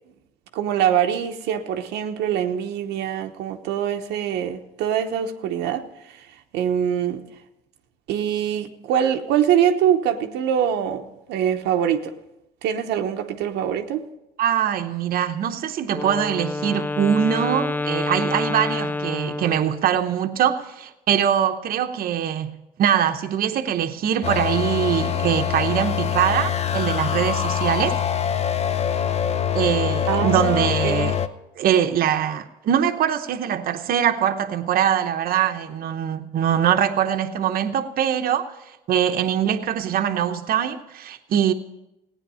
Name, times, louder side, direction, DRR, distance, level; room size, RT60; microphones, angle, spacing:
voice 1, 0.5-5.8 6.2-6.3 6.5-7.2 8.1-12.1 12.6-14.0 30.1-31.2, right 9 dB, 85° right, 0.9 m, -23 dB
voice 2, 14.4-28.0 29.5-31.2 31.6-38.5 38.9-41.5, right 9 dB, 60° right, 0.8 m, -22 dB
Wind instrument woodwind instrument, 15.9-20.0, left 3 dB, 10° left, 0.3 m, -28 dB
sound 1, 24.2-31.3, left 9 dB, 40° left, 0.7 m, -24 dB
16.5 x 9.4 x 5.5 m
cardioid pair, 110°, 17 cm